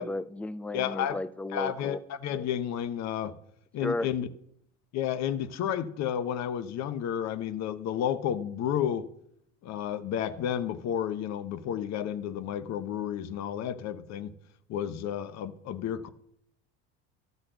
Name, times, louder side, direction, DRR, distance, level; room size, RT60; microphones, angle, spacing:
voice 1, 0.0-2.0 3.8-4.1, left 2 dB, 5° left, 0.3 m, -34 dB
voice 2, 0.7-1.2 1.5-3.4 3.7-4.3 4.9-9.1 9.6-14.3 14.7-16.1, left 9 dB, 55° left, 0.8 m, -31 dB
12.5 x 4.1 x 7.9 m
supercardioid pair, 95°, 33 cm